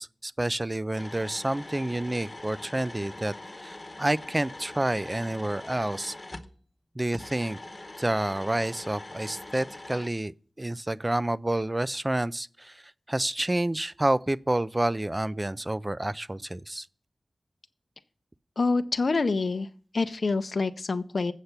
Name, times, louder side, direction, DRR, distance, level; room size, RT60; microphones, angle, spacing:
voice 1, 0.0-3.3 3.6-6.1 7.0-7.6 8.0-10.3 10.6-12.8 13.1-16.9, right 1 dB, 25° right, 0.3 m, -29 dB
sound 1, 0.9-6.5 7.1-10.1, left 2 dB, 30° left, 0.9 m, -43 dB
voice 2, 18.6-19.7 19.9-21.3, left 3 dB, 70° left, 0.5 m, -26 dB
8.2 x 6.6 x 5.8 m
wide cardioid pair, 80°, 0 cm